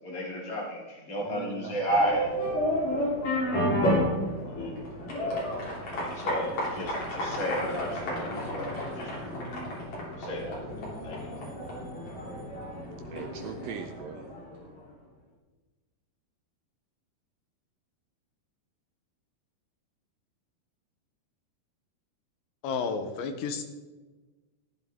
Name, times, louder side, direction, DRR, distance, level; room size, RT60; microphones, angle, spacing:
voice 1, 0.0-2.3 4.4-4.7 5.2-5.3 6.0-9.1 10.2-10.6 11.0-11.3, equal, 20° left, -4 dB, 2.7 m, -32 dB
voice 2, 1.2-2.0 2.5-3.1 13.0-14.3, right 7 dB, 80° right, 6 dB, 2.1 m, -42 dB
sound 1, 1.9-14.6, equal, 45° left, 4.2 m, -31 dB
voice 3, 22.6-23.6, left 5 dB, 75° left, 7 dB, 2.3 m, -31 dB
16.0 x 11.5 x 3.6 m, 1.3 s
omnidirectional pair, 4.6 m